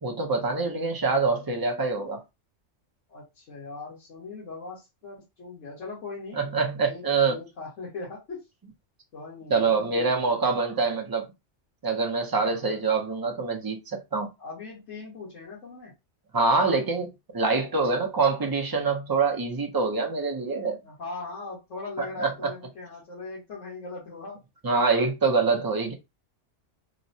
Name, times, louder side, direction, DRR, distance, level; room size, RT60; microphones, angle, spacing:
voice 1, 0.0-2.2 6.3-7.4 9.5-11.3 11.8-14.3 16.3-20.8 22.0-22.3 24.6-25.9, right 4 dB, 35° right, 0.4 m, -25 dB
voice 2, 3.1-6.5 6.8-8.4 9.1-10.4 12.4-12.7 14.4-15.9 20.8-24.4, left 3 dB, 75° left, 1.7 m, -40 dB
3.9 x 2.0 x 2.6 m
omnidirectional pair, 1.3 m